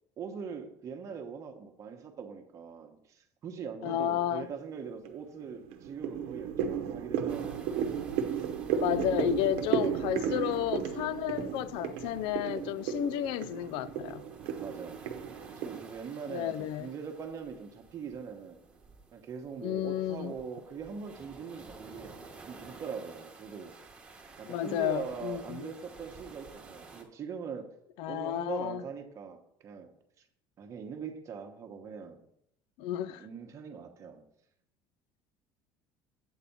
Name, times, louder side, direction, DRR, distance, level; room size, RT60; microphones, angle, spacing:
voice 1, 0.2-7.8 10.2-10.7 14.6-15.0 15.5-18.6 19.1-22.2 22.4-23.8 24.4-27.7 28.1-29.9 30.6-32.2 33.1-34.2, right 6 dB, 30° right, 1.1 m, -42 dB
voice 2, 3.8-4.5 8.8-14.2 16.3-16.9 19.6-20.3 24.5-25.7 28.0-28.8 32.8-33.3, left 12 dB, 60° left, 0.4 m, -32 dB
sound 1, 4.1-4.6 5.1-15.8, right 8 dB, 75° right, 0.9 m, -34 dB
sound 2, 7.3-27.0, right 3 dB, 10° right, 1.2 m, -53 dB
8.3 x 4.2 x 6.9 m
cardioid pair, 170°, 10 cm